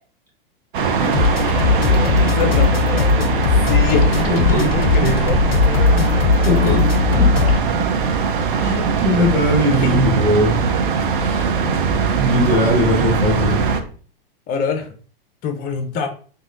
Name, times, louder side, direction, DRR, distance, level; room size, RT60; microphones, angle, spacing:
sound 1, 0.7-13.8, right 5 dB, 65° right, 0.5 m, -20 dB
sound 2, 1.1-7.6, left 5 dB, 85° left, 0.4 m, -17 dB
voice 1, 2.2-3.3 3.7-4.2 4.6-5.4 9.7-10.1 14.5-14.9 15.4-16.1, left 5 dB, 30° left, 5 dB, 0.6 m, -25 dB
voice 2, 4.3-4.7 5.0-5.1 6.4-7.4 7.8-7.9 8.6-10.6 11.2-11.5 12.1-13.7, equal, 10° left, -2 dB, 1.0 m, -20 dB
3.4 x 2.6 x 2.5 m, 0.42 s
figure-of-eight pair, 100°, 29 cm